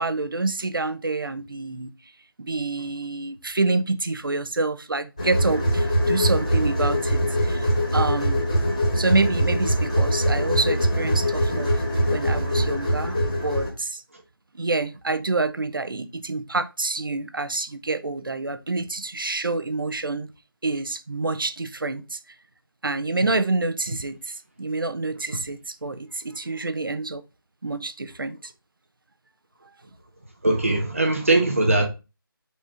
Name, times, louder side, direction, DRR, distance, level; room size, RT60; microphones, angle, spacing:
voice 1, 0.0-1.9 2.4-7.7 7.9-8.4 8.9-11.8 12.1-14.0 14.5-20.3 20.6-22.2 22.8-27.2 27.6-28.5, right 3 dB, 65° right, 0.7 m, -27 dB
sound 1, 5.2-13.7, equal, 20° left, 1.2 m, -23 dB
voice 2, 30.4-31.9, right 2 dB, 35° right, 0.8 m, -20 dB
4.8 x 4.2 x 4.9 m
figure-of-eight pair, 180°, 12 cm